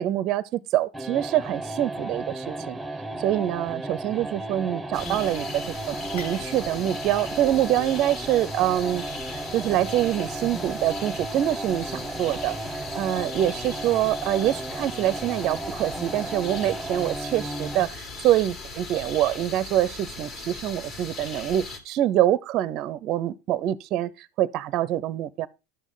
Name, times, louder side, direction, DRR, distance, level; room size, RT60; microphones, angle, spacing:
voice 1, 0.0-2.8 3.2-9.0 9.3-12.6 12.9-25.5, right 12 dB, 45° right, 0.5 m, -25 dB
sound 1, 0.9-18.0, right 2 dB, 5° right, 0.9 m, -34 dB
sound 2, 4.9-21.8, left 3 dB, 40° left, 2.0 m, -39 dB
sound 3, 6.2-8.3 8.7-8.8 9.7-9.9, left 3 dB, 85° left, 5.9 m, -48 dB
10.5 x 6.3 x 3.8 m
hypercardioid pair, 105°, 0 cm